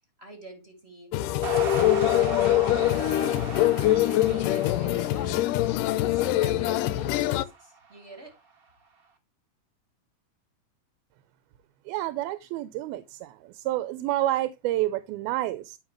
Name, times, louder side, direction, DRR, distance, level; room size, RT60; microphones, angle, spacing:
voice 1, 0.2-1.1 1.4-3.2 3.5-5.5 6.1-8.3, right 1 dB, 25° right, 1.5 m, -46 dB
sound 1, 1.1-7.5, left 14 dB, 80° left, 1.9 m, -24 dB
sound 2, 1.4-7.9, right 6 dB, 50° right, 1.0 m, -37 dB
voice 2, 11.9-15.8, right 15 dB, 85° right, 2.6 m, -29 dB
11.0 x 5.9 x 3.1 m
omnidirectional pair, 4.3 m